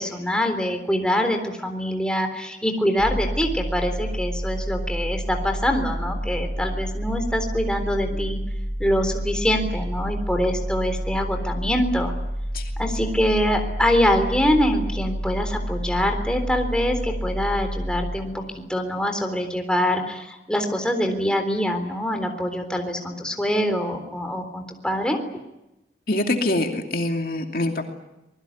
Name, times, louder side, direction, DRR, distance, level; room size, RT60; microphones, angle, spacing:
voice 1, 0.0-8.4 8.8-12.1 12.8-18.4 18.7-25.2, equal, 5° left, 4 dB, 3.8 m, -24 dB
sound 1, 3.0-18.8, equal, 45° right, 7.3 m, -29 dB
voice 2, 26.1-27.9, left 1 dB, 50° left, 3 dB, 2.7 m, -24 dB
26.0 x 21.0 x 9.6 m, 0.93 s
head